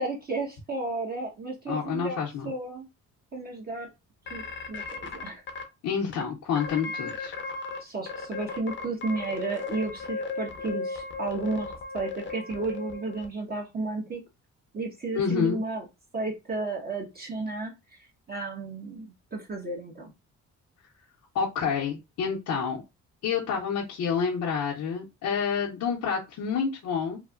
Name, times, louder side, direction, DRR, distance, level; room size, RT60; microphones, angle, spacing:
voice 1, 0.0-2.2 2.4-2.9 3.3-3.9 4.3-4.4 4.7-5.4 7.8-14.2 14.7-15.9 16.1-20.1, right 3 dB, 30° right, 0 dB, 1.0 m, -33 dB
voice 2, 1.7-2.5 5.8-7.3 15.2-15.6 21.3-22.8 23.2-27.2, left 6 dB, 75° left, -4 dB, 0.7 m, -28 dB
sound 1, 4.3-5.6 6.1-6.2 6.5-7.8 8.1-13.3, left 4 dB, 40° left, 0.7 m, -35 dB
3.1 x 2.1 x 2.4 m, 0.24 s
cardioid pair, 90°, 30 cm